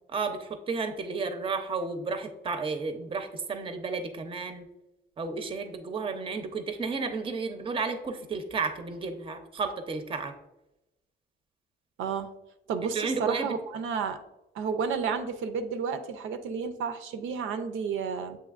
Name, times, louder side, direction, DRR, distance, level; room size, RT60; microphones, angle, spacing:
voice 1, 0.1-4.7 5.2-10.3 12.9-13.5, right 4 dB, 25° right, 8 dB, 0.5 m, -32 dB
voice 2, 12.0-12.3 12.7-14.2 14.5-18.4, right 6 dB, 85° right, 9 dB, 0.5 m, -31 dB
7.4 x 2.8 x 2.4 m, 0.92 s
cardioid pair, 90°, 20 cm